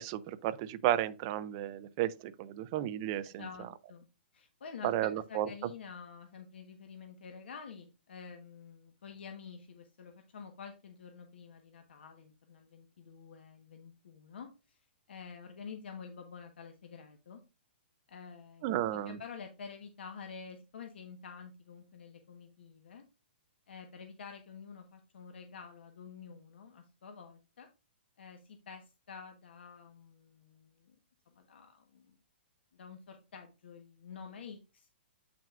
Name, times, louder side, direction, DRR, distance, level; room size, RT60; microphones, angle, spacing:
voice 1, 0.0-3.4 4.8-5.5 18.6-19.2, right 12 dB, 25° right, 0.4 m, -33 dB
voice 2, 3.2-4.1 4.3-14.8 15.1-17.4 18.1-23.0 23.7-27.7 28.2-30.9 31.3-32.2 32.7-34.9, left 6 dB, 70° left, 1.3 m, -49 dB
8.8 x 6.0 x 2.5 m
hypercardioid pair, 175°, 6 cm